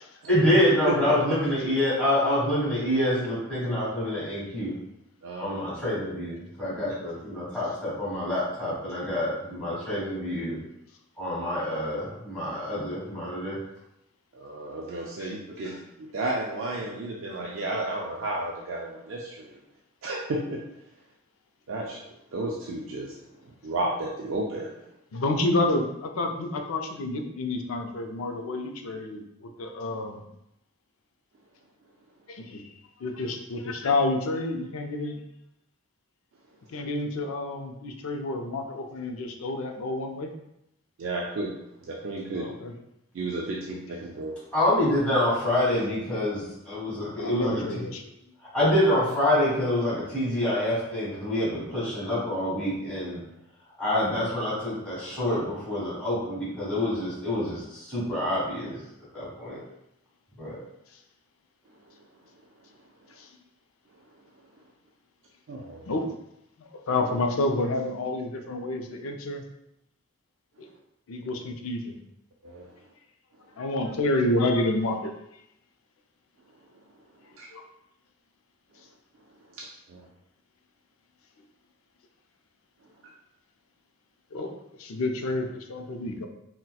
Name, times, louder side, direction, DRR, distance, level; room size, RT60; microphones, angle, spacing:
voice 1, 0.3-4.7 5.4-10.6 11.2-13.6 44.5-47.8 48.4-53.2 53.8-58.8 59.1-59.6 60.4-60.6, left 1 dB, 5° left, -9 dB, 1.4 m, -26 dB
voice 2, 5.2-5.6 14.3-19.6 20.0-20.6 21.7-22.0 22.3-23.1 23.4-24.7 41.0-41.5 41.8-42.5 43.1-44.3 65.5-65.9 72.4-72.7 77.4-77.5 79.5-80.1, right 2 dB, 65° right, -3 dB, 0.4 m, -33 dB
voice 3, 25.1-30.2 32.3-32.6 33.0-35.2 36.7-40.3 42.4-42.7 47.2-48.0 63.2-63.3 65.9-66.2 66.6-69.4 70.6-70.7 71.1-72.0 73.6-75.1 77.5-77.6 84.3-86.3, left 2 dB, 90° left, 4 dB, 0.4 m, -29 dB
4.1 x 2.1 x 2.3 m, 0.82 s
head